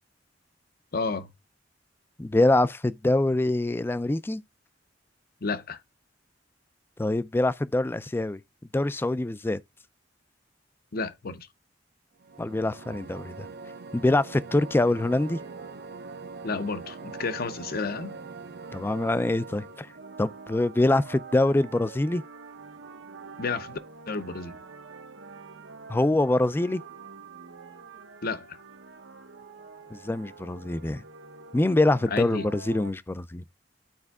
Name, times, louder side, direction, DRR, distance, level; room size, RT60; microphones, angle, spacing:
voice 1, 0.9-1.3 5.4-5.8 10.9-11.5 16.4-18.2 23.4-23.8 24.1-24.6 28.2-28.6 32.1-32.5, left 4 dB, 55° left, 0.7 m, -31 dB
voice 2, 2.2-4.4 7.0-8.4 8.7-9.6 12.4-13.5 13.9-15.4 18.7-19.9 20.2-22.2 25.9-26.8 29.9-31.0 31.5-33.4, left 2 dB, 10° left, 0.3 m, -24 dB
sound 1, 12.2-20.0, right 4 dB, 55° right, 0.5 m, -43 dB
sound 2, 14.5-32.9, right 4 dB, 80° right, 1.0 m, -46 dB
12.0 x 4.5 x 2.3 m
head